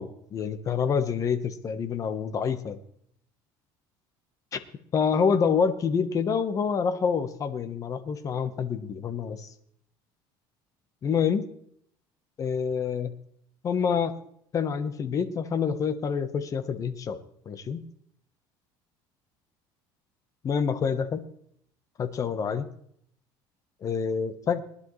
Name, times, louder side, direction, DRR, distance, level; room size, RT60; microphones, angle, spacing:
voice 1, 0.0-2.8 4.5-4.6 4.9-9.5 11.0-11.5 12.4-13.1 13.6-14.1 14.5-17.2 17.5-17.8 20.4-21.2 22.0-22.7 23.8-24.6, left 6 dB, 35° left, 10 dB, 1.1 m, -27 dB
20.0 x 11.0 x 3.2 m, 0.68 s
cardioid pair, 140°, 10 cm